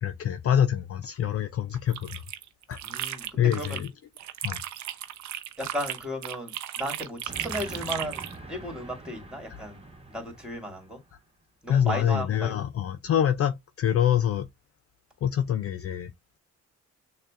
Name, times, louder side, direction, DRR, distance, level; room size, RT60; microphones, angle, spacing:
voice 1, 0.0-2.2 2.7-2.8 3.4-3.9 4.4-4.6 11.7-14.5 15.2-16.1, left 9 dB, 50° left, 0.5 m, -25 dB
sound 1, 1.7-3.9 4.2-8.4, right 12 dB, 70° right, 0.6 m, -36 dB
voice 2, 2.8-3.8 5.6-8.2 8.5-9.8 10.1-11.0 11.6-12.6, equal, 5° right, 2.1 m, -35 dB
Train, 7.3-11.2, right 2 dB, 20° right, 1.2 m, -44 dB
6.5 x 2.3 x 2.4 m
cardioid pair, 90°, 30 cm